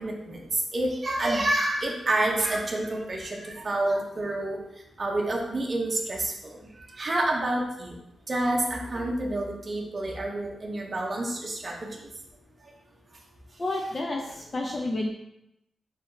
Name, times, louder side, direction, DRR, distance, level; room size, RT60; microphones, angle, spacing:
voice 1, 0.0-4.6 5.0-8.0 8.3-12.0, right 1 dB, 30° right, -1 dB, 0.8 m, -28 dB
voice 2, 13.6-15.1, left 2 dB, 30° left, 0 dB, 0.4 m, -30 dB
4.1 x 3.2 x 3.9 m, 0.83 s
wide cardioid pair, 155°, 0 cm